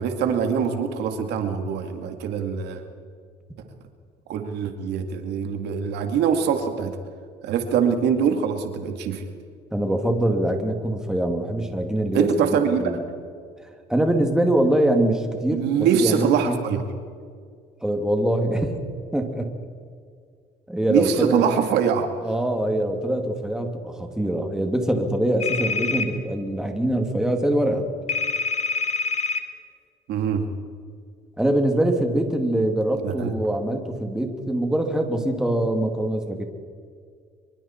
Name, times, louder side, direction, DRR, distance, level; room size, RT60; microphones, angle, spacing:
voice 1, 0.0-2.8 4.3-6.9 7.4-9.3 12.1-12.9 15.5-16.8 20.9-22.1 30.1-30.4 33.0-33.3, right 7 dB, 80° right, 6 dB, 2.3 m, -23 dB
voice 2, 9.7-13.0 13.9-16.6 17.8-18.8 19.1-19.5 20.7-21.4 22.2-27.9 31.4-36.4, right 1 dB, 5° right, 3 dB, 2.6 m, -23 dB
sound 1, 25.4-26.1 28.1-29.4, left 3 dB, 40° left, 2.1 m, -25 dB
25.0 x 23.5 x 4.5 m, 2.1 s
cardioid pair, 110°, 17 cm